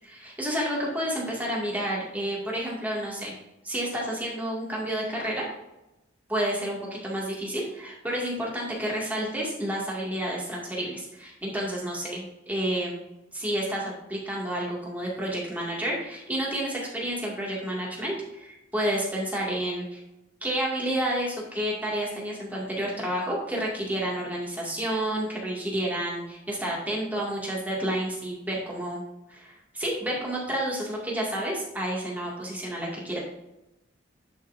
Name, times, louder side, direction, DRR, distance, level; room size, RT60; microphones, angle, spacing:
voice 1, 0.0-3.4 3.6-5.5 6.3-13.0 13.3-20.0 20.4-29.0 29.3-33.2, right 1 dB, 10° right, -4 dB, 2.1 m, -30 dB
10.5 x 5.8 x 2.6 m, 0.95 s
head